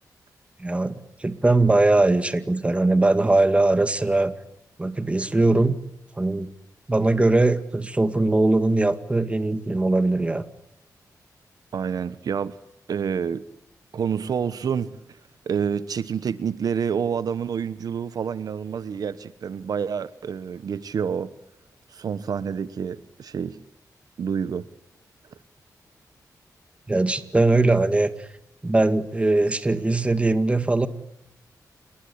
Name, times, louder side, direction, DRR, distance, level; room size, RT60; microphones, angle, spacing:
voice 1, 0.6-4.3 4.8-5.8 6.2-6.5 6.9-10.4 26.9-28.3 28.6-30.9, right 2 dB, 20° right, 2.0 m, -21 dB
voice 2, 11.7-12.5 12.9-13.4 13.9-15.0 15.5-21.3 21.9-23.6 24.2-24.7, right 7 dB, 70° right, 1.1 m, -28 dB
28.5 x 21.0 x 9.9 m
wide cardioid pair, 105°, 7 cm